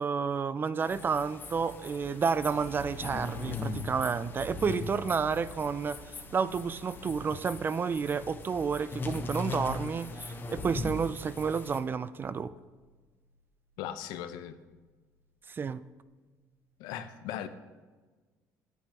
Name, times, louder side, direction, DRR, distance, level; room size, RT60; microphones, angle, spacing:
voice 1, 0.0-12.5 15.5-15.8, right 5 dB, 30° right, 15 dB, 0.3 m, -31 dB
sound 1, 0.9-11.8, left 3 dB, 30° left, 0.9 m, -40 dB
sound 2, 2.4-11.9 12.1-13.4 13.7-14.2 14.6-15.2, right 2 dB, 80° right, 1.6 m, -52 dB
voice 2, 13.8-14.6 16.8-17.5, left 10 dB, 85° left, 10 dB, 0.5 m, -38 dB
9.1 x 8.1 x 2.9 m, 1.3 s
cardioid pair, 95°, 7 cm